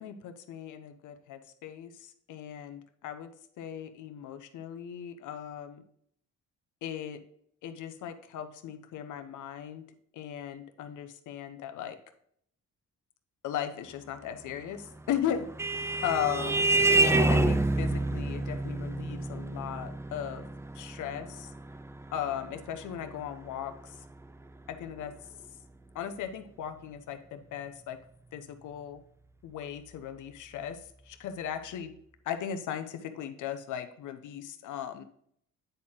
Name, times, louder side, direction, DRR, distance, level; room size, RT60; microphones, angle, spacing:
voice 1, 0.0-3.3 3.6-5.8 6.8-7.2 7.6-9.8 10.1-12.0 13.4-15.5 16.0-16.7 17.0-20.5 20.7-21.5 22.1-24.0 24.7-25.1 25.9-28.0 28.3-29.0 29.4-31.9 32.2-35.0, left 9 dB, 80° left, 9 dB, 0.9 m, -37 dB
Vehicle horn car horn honking, 15.0-24.0, right 2 dB, 10° right, 0.5 m, -28 dB
9.3 x 4.3 x 3.7 m, 0.67 s
cardioid pair, 90°, 30 cm